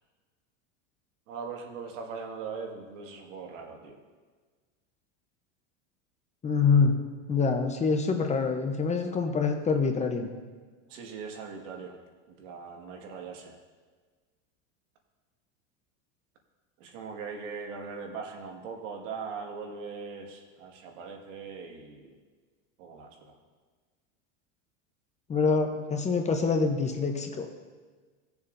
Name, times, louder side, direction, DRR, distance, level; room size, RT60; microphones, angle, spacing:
voice 1, 1.3-4.0 10.9-12.0 12.3-13.6 16.8-22.2 22.8-23.3, right 5 dB, 75° right, 2 dB, 1.9 m, -40 dB
voice 2, 6.4-6.9 7.3-10.3 25.3-27.5, left 5 dB, 20° left, 4 dB, 0.8 m, -25 dB
18.5 x 7.0 x 2.6 m, 1.4 s
supercardioid pair, 130°, 37 cm